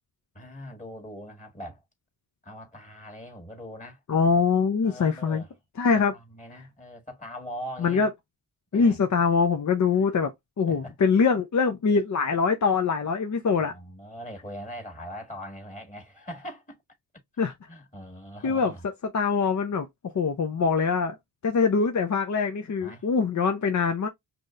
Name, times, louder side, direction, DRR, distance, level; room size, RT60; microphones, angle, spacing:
voice 1, 0.4-1.8 2.4-4.0 4.8-5.5 5.9-8.1 8.7-9.0 9.9-10.1 10.7-10.9 13.6-16.8 17.3-18.8 22.8-23.1, equal, 20° left, 1.7 m, -41 dB
voice 2, 4.1-5.4 5.8-6.1 7.8-8.1 8.7-10.3 10.6-13.7 17.4-17.5 18.4-18.7 19.1-21.2 21.4-24.1, left 5 dB, 45° left, 0.7 m, -23 dB
6.0 x 2.7 x 2.4 m
cardioid pair, 55°, 41 cm